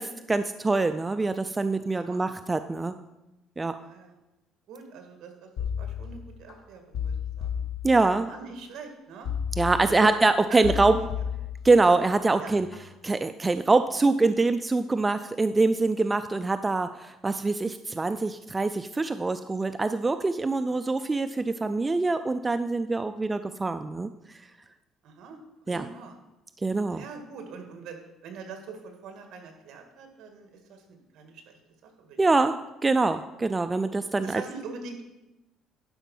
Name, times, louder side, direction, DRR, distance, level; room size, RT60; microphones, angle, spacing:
voice 1, 0.0-2.9 3.6-3.8 7.8-8.3 9.6-11.0 11.6-12.7 13.0-24.1 25.7-25.9 26.6-27.0 32.2-34.4, right 3 dB, 15° right, 10 dB, 0.3 m, -24 dB
voice 2, 2.0-2.4 3.8-4.2 4.7-7.6 8.3-9.3 9.9-10.1 10.5-11.1 12.4-12.5 20.7-20.8 25.0-25.4 25.6-26.1 26.9-32.2 33.1-33.3 34.2-35.0, right 5 dB, 65° right, 5 dB, 1.8 m, -43 dB
sound 1, 5.6-6.5 6.9-8.4 9.2-10.2 10.6-12.1 12.5-12.9, left 8 dB, 60° left, 1.5 m, -33 dB
11.5 x 5.2 x 5.4 m, 0.98 s
cardioid pair, 140°, 0 cm